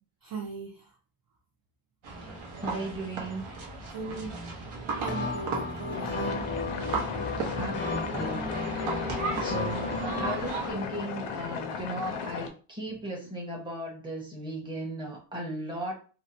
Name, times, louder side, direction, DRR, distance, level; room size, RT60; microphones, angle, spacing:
voice 1, 0.2-0.9 3.9-4.3 5.0-6.5, right 4 dB, 45° right, 0.4 m, -38 dB
sound 1, 2.0-10.7, right 3 dB, 70° right, 0.9 m, -35 dB
voice 2, 2.6-3.4 7.6-8.4 8.7-15.9, right 1 dB, 10° right, 0.8 m, -36 dB
sound 2, 5.1-10.4, left 4 dB, 25° left, 0.4 m, -35 dB
sound 3, 5.9-12.5, left 6 dB, 90° left, 0.6 m, -36 dB
2.7 x 2.1 x 2.6 m
wide cardioid pair, 150°, 50 cm